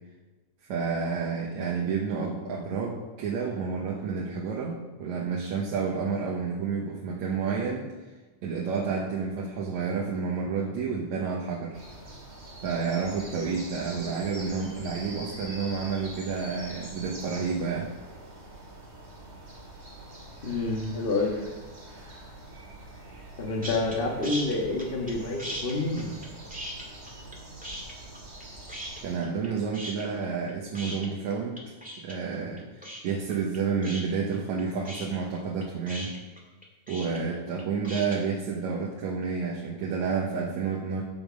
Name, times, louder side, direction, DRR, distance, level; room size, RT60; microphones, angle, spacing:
voice 1, 0.7-7.9 8.4-11.8 12.6-17.9 29.0-31.6 32.0-36.1 36.9-41.0, right 5 dB, 70° right, -2 dB, 2.3 m, -30 dB
sound 1, 11.7-29.2, right 1 dB, 25° right, 1.8 m, -44 dB
voice 2, 20.4-21.4 23.4-26.1, left 2 dB, 90° left, 1 dB, 0.5 m, -28 dB
sound 2, 23.6-24.0 24.2-25.1 25.4-27.4 27.6-28.4 28.7-29.5 29.7-38.2, equal, 5° right, 1.2 m, -38 dB
15.0 x 5.9 x 5.2 m, 1.2 s
omnidirectional pair, 3.6 m